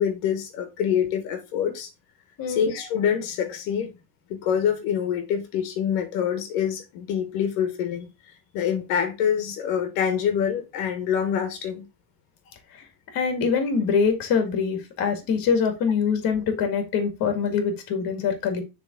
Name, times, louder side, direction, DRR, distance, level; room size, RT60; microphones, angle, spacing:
voice 1, 0.0-1.9 2.5-3.9 4.3-8.1 8.5-11.8, left 8 dB, 85° left, 1.4 m, -25 dB
voice 2, 13.1-18.6, left 6 dB, 50° left, 1.9 m, -24 dB
6.8 x 3.6 x 3.7 m
cardioid pair, 145°, 45 cm